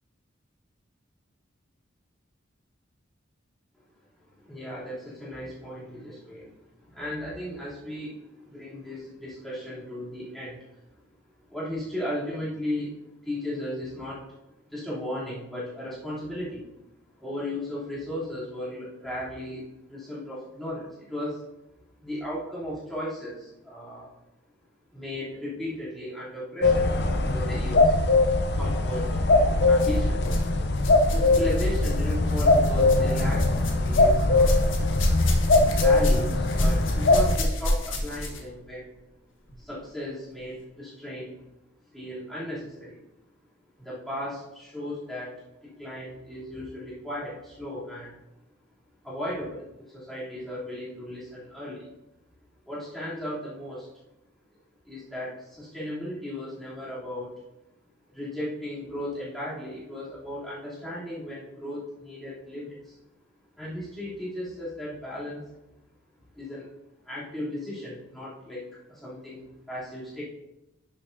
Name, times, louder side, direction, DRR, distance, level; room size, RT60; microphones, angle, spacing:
voice 1, 4.4-6.5 6.9-10.7 11.5-12.9 13.2-14.3 14.7-16.7 17.2-21.4 22.0-24.1 24.9-26.9 27.2-28.0 28.5-29.1 29.7-30.6 31.1-33.5 33.8-34.7 35.7-38.9 39.6-41.3 41.9-43.0 43.8-48.2 49.0-51.9 52.7-53.9 54.8-57.3 58.1-63.0 63.6-65.4 66.3-66.7 67.0-70.2, left 1 dB, ahead, -9 dB, 3.1 m, -36 dB
sound 1, 26.6-37.4, left 2 dB, 55° left, 0.7 m, -21 dB
sound 2, 28.8-29.0 29.7-30.5 30.7-38.5 39.5-39.6 40.4-40.5, left 1 dB, 80° left, 1.5 m, -30 dB
10.5 x 7.2 x 2.7 m, 0.92 s
head